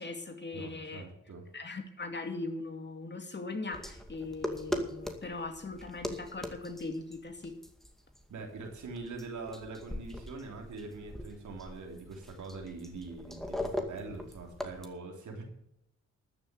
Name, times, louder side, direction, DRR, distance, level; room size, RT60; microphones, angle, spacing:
voice 1, 0.0-1.1 1.5-7.6, left 3 dB, 40° left, 5 dB, 2.5 m, -40 dB
voice 2, 0.5-1.5 8.3-15.4, right 3 dB, 85° right, 2 dB, 3.5 m, -43 dB
sound 1, 3.7-14.9, left 1 dB, ahead, 2.2 m, -41 dB
13.0 x 7.1 x 8.3 m, 0.81 s
cardioid pair, 65°, 29 cm